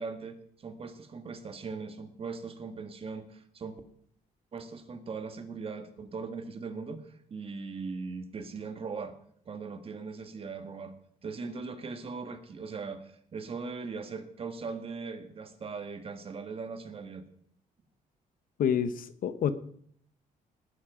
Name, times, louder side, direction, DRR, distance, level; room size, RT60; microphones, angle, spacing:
voice 1, 0.0-3.8 4.5-9.1 9.5-10.9 11.2-17.2, right 4 dB, 40° right, 8 dB, 1.7 m, -39 dB
voice 2, 18.6-19.5, left 8 dB, 65° left, 12 dB, 1.0 m, -28 dB
19.5 x 7.5 x 5.1 m, 0.63 s
cardioid pair, 120°, 15 cm